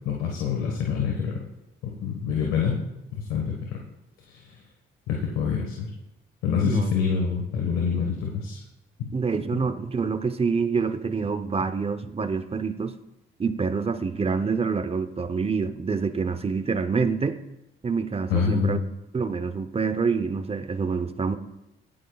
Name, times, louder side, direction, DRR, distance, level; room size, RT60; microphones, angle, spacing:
voice 1, 0.0-1.4 1.8-2.8 3.1-3.7 4.3-4.4 5.1-5.9 6.4-8.6 9.0-9.1 9.5-9.6 18.3-18.8, left 6 dB, 90° left, 0 dB, 1.5 m, -26 dB
voice 2, 9.1-13.0 13.4-17.4 17.8-18.8 19.1-21.4, right 5 dB, 30° right, 11 dB, 0.8 m, -26 dB
15.5 x 9.3 x 2.4 m, 0.91 s
supercardioid pair, 65°, 20 cm